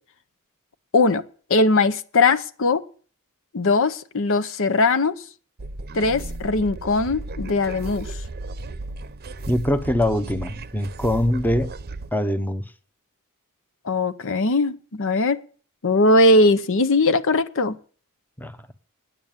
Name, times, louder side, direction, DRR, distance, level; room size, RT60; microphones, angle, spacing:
voice 1, 1.5-2.8 3.5-5.2 5.9-8.2 13.8-15.4 15.8-17.8, left 2 dB, 65° left, 0.8 m, -20 dB
sound 1, 5.6-12.1, right 2 dB, 45° right, 0.7 m, -35 dB
voice 2, 9.5-11.7 12.1-12.7 18.4-18.6, left 1 dB, 10° left, 0.8 m, -23 dB
10.0 x 9.0 x 8.9 m
head